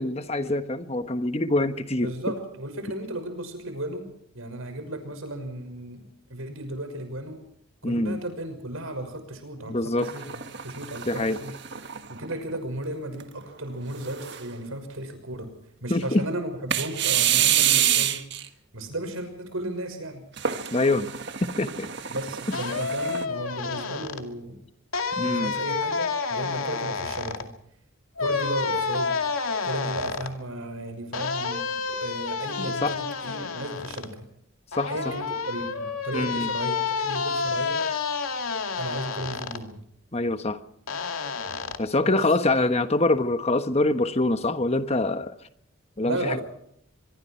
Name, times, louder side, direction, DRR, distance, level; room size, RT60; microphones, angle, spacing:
voice 1, 0.0-2.1 7.8-8.2 9.7-10.1 11.1-11.4 15.9-16.2 20.7-21.1 21.4-21.9 25.2-25.5 32.6-32.9 34.8-34.9 36.1-36.5 40.1-40.6 41.8-45.3 46.0-46.4, left 2 dB, 30° left, 10 dB, 1.3 m, -24 dB
voice 2, 2.0-4.1 4.3-6.0 6.3-7.4 7.8-11.5 12.1-15.5 15.8-20.2 22.1-24.6 25.2-27.5 28.2-29.2 29.6-34.3 34.9-37.9 38.8-39.8 42.0-42.2 46.0-46.4, right 1 dB, 75° right, 8 dB, 6.1 m, -35 dB
sound 1, 10.0-12.6 13.1-13.2 13.9-14.6 16.7-18.5 20.4-23.2, right 10 dB, 55° right, 1.6 m, -27 dB
sound 2, 22.5-24.2 24.9-27.4 28.2-30.3 31.1-34.1 34.7-39.6 40.9-41.8, left 5 dB, 85° left, 2.4 m, -29 dB
24.5 x 23.5 x 4.6 m, 0.69 s
head